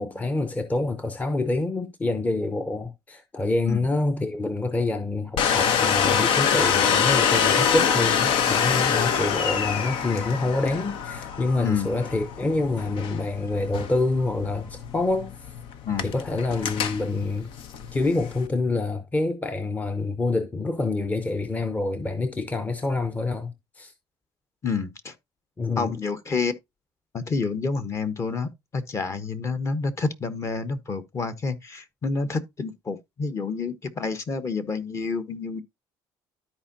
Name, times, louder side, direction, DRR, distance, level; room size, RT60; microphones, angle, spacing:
voice 1, 0.0-15.3 16.0-17.5 17.9-23.9 25.6-26.0, left 2 dB, 15° left, 0.8 m, -27 dB
Domestic sounds home sounds, 5.4-18.5, left 7 dB, 70° left, 1.0 m, -25 dB
voice 2, 24.6-25.1 25.8-26.5 27.1-35.6, left 4 dB, 35° left, 1.2 m, -29 dB
13.0 x 4.6 x 2.8 m
cardioid pair, 100°, 9 cm